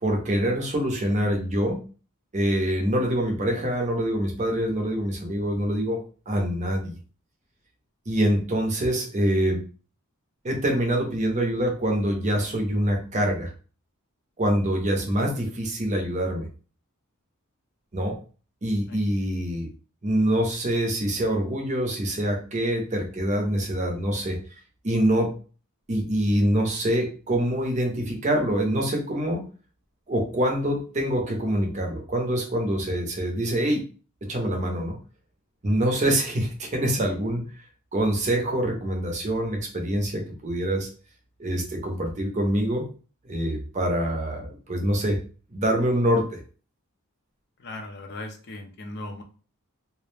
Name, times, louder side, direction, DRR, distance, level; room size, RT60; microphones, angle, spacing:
voice 1, 0.0-1.8 2.3-6.0 6.3-6.9 8.1-9.6 10.4-13.5 14.4-16.5 17.9-18.2 18.6-19.7 20.0-24.4 24.8-25.3 25.9-29.4 30.1-33.8 34.2-35.0 35.6-37.4 37.9-40.9 41.4-42.9 43.2-45.2 45.5-46.4, right 1 dB, 35° right, 1 dB, 0.6 m, -25 dB
voice 2, 47.6-49.2, left 2 dB, 50° left, 5 dB, 0.5 m, -38 dB
2.4 x 2.0 x 3.1 m, 0.37 s
head